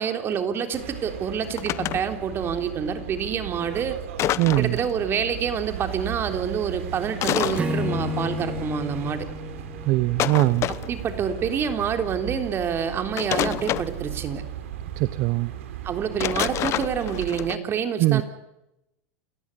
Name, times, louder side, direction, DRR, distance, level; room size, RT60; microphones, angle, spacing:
voice 1, 0.0-4.0 4.6-9.3 10.9-14.4 15.8-18.2, right 7 dB, 35° right, 6 dB, 3.6 m, -27 dB
sound 1, 0.7-17.5, right 9 dB, 75° right, 3.5 m, -36 dB
sound 2, 1.4-2.0 4.2-4.8 7.2-7.6 10.2-11.0 13.2-13.9 16.2-17.6, left 13 dB, 40° left, 0.9 m, -27 dB
voice 2, 4.4-4.8 9.8-10.7 15.0-15.5 18.0-18.2, right 18 dB, 55° right, 15 dB, 0.9 m, -21 dB
Acoustic guitar / Strum, 7.6-10.9, left 2 dB, 15° right, 3.6 m, -32 dB
29.0 x 15.0 x 9.8 m, 0.91 s
hypercardioid pair, 110°, 7 cm